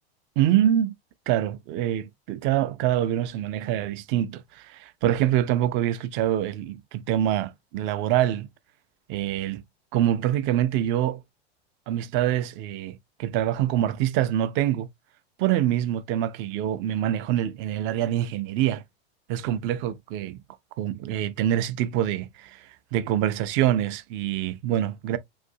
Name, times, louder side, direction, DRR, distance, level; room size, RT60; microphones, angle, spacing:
voice 1, 0.4-0.9 1.3-8.5 9.1-9.6 9.9-11.2 11.9-14.9 15.4-18.8 19.3-20.4 20.8-25.2, right 12 dB, 40° right, 0.4 m, -25 dB
2.6 x 2.5 x 2.6 m
hypercardioid pair, 115°, 32 cm